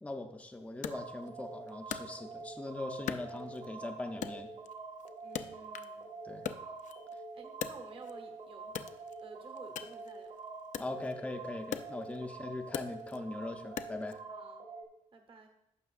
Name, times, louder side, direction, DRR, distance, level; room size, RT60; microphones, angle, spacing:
voice 1, 0.0-4.5 6.2-6.4 10.8-14.2, left 2 dB, 10° left, 4 dB, 0.6 m, -40 dB
Wood, 0.8-2.6 3.1-3.8 4.2-6.0 6.3-8.3 8.7-14.2, left 9 dB, 70° left, 0.5 m, -43 dB
sound 1, 0.9-14.8, right 3 dB, 85° right, 1.5 m, -46 dB
voice 2, 5.2-6.2 6.6-6.8 7.3-8.9 9.2-10.3 12.2-12.3 14.3-14.7 15.1-15.5, right 3 dB, 45° right, 4 dB, 1.1 m, -53 dB
15.0 x 6.0 x 2.4 m, 0.82 s
wide cardioid pair, 135°, 13 cm